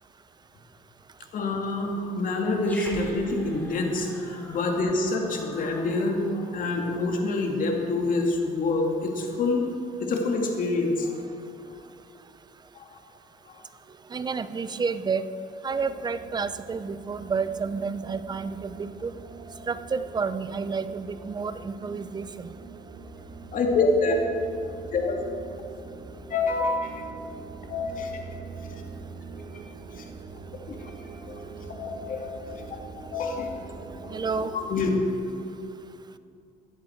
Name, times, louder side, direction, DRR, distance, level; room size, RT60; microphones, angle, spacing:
voice 1, 1.3-9.7 10.0-11.2 12.8-13.0 23.5-24.1 24.9-25.2 26.3-27.0 27.7-28.2 29.9-30.0 30.7-30.9 31.2-31.4 31.8-32.4 32.7-32.8 33.1-33.5 34.4-34.9, left 3 dB, 55° left, 1 dB, 2.3 m, -27 dB
Growling, 2.6-7.2, left 1 dB, 10° left, 3.6 m, -44 dB
voice 2, 14.1-15.2 15.6-19.1 19.7-22.5 34.1-34.5, right 5 dB, 25° right, 12 dB, 0.6 m, -30 dB
sound 1, 15.7-34.5, right 4 dB, 40° right, 1.3 m, -43 dB
16.0 x 10.5 x 4.6 m, 2.6 s
cardioid pair, 110°, 17 cm